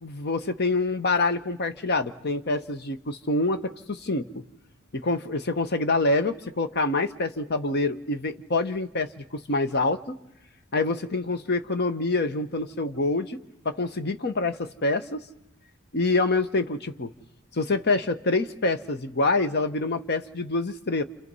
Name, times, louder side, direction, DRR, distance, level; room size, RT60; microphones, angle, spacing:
voice 1, 0.0-4.3 4.9-10.2 10.7-13.4 13.6-15.2 15.9-17.1 17.5-21.0, left 2 dB, 50° left, 10 dB, 1.0 m, -26 dB
28.5 x 28.0 x 5.5 m, 0.87 s
head